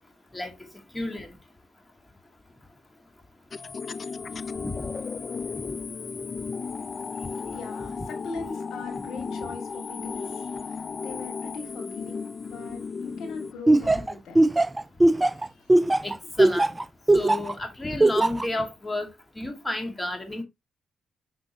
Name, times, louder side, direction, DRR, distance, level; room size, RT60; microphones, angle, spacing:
voice 1, 0.9-1.3 4.6-4.8 16.0-16.7 17.1-19.1 19.4-20.4, left 1 dB, 20° left, 2.1 m, -31 dB
sound 1, 3.5-13.5, left 5 dB, 45° left, 0.4 m, -35 dB
voice 2, 7.4-14.7 15.1-16.0, left 4 dB, 75° left, 2.3 m, -41 dB
Laughter, 13.7-17.5 18.0-18.4, right 2 dB, 20° right, 0.4 m, -19 dB
6.1 x 6.0 x 2.9 m
supercardioid pair, 65°, 0 cm